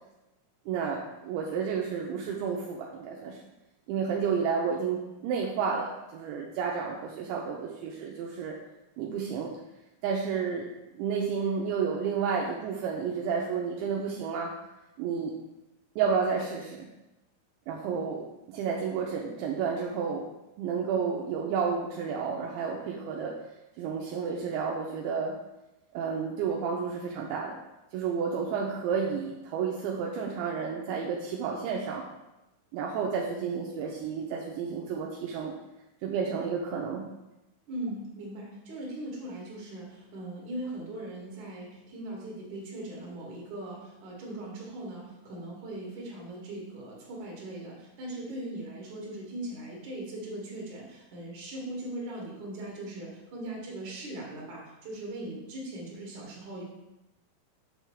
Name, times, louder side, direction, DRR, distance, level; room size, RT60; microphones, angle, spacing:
voice 1, 0.7-3.4 3.9-8.6 9.0-9.5 10.0-10.7 11.0-14.5 15.0-15.3 16.0-16.9 17.7-18.2 18.5-20.2 20.6-23.3 23.8-25.3 25.9-27.5 27.9-32.0 32.7-35.5 36.0-37.0, right 6 dB, 80° right, -1 dB, 2.8 m, -31 dB
voice 2, 37.7-56.6, right 1 dB, 50° right, -3 dB, 2.7 m, -39 dB
7.3 x 3.4 x 6.2 m, 0.97 s
omnidirectional pair, 5.5 m